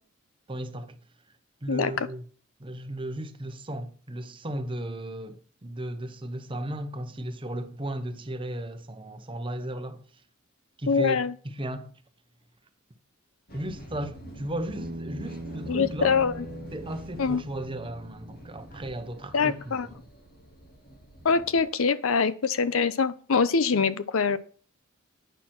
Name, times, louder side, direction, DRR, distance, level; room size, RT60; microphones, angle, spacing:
voice 1, 0.5-1.0 1.6-2.2 2.6-10.0 10.8-11.9 13.5-16.2 16.7-20.0, right 1 dB, 25° right, 0.9 m, -35 dB
voice 2, 1.7-2.1 10.9-11.3 15.7-16.5 17.2-17.4 19.3-19.9 21.2-24.4, left 5 dB, 75° left, 0.6 m, -24 dB
sound 1, 13.5-21.6, right 1 dB, 45° left, 1.9 m, -46 dB
Bass guitar, 14.8-19.1, right 1 dB, 40° right, 0.5 m, -41 dB
9.1 x 6.1 x 4.3 m
head